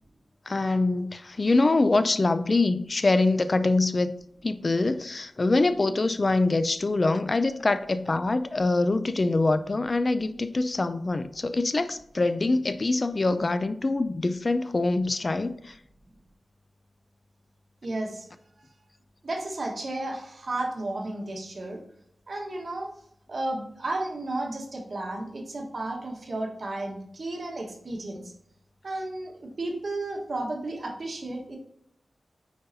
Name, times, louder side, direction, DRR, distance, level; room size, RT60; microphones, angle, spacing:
voice 1, 0.5-4.1 4.4-15.8, left 2 dB, 45° left, 0.4 m, -24 dB
voice 2, 17.8-18.3 19.2-21.8 22.3-22.9 23.3-28.3 28.8-31.6, right 2 dB, 65° right, 1.3 m, -33 dB
9.3 x 4.0 x 2.7 m
cardioid pair, 50°, 0 cm